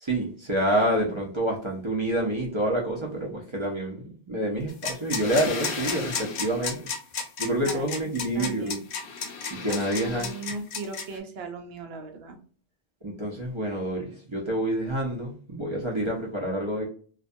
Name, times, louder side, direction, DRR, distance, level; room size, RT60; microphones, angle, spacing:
voice 1, 0.0-6.8 7.4-8.8 9.5-10.3 13.0-16.9, right 1 dB, 35° right, -3 dB, 0.5 m, -28 dB
sound 1, 4.7-11.2, left 5 dB, 75° left, 0.8 m, -32 dB
voice 2, 7.7-8.1 8.3-8.8 9.7-9.8 10.0-12.4, right 4 dB, 65° right, 4 dB, 0.8 m, -38 dB
2.4 x 2.2 x 2.5 m, 0.44 s
omnidirectional pair, 1.1 m